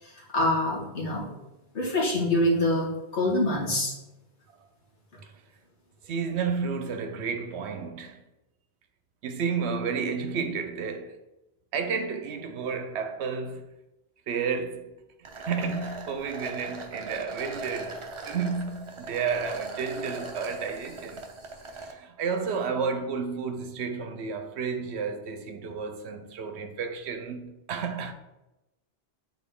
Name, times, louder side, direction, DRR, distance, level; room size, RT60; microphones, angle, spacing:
voice 1, 0.0-1.4 1.7-3.9, left 1 dB, 85° left, 1.8 m, -26 dB
voice 2, 6.0-8.2 9.2-11.2 11.7-13.7 14.3-14.9 15.2-21.2 21.7-28.1, right 5 dB, 75° right, 0.9 m, -31 dB
sound 1, 15.2-21.9, right 3 dB, 35° right, 0.6 m, -39 dB
7.2 x 3.7 x 3.6 m
omnidirectional pair, 1.1 m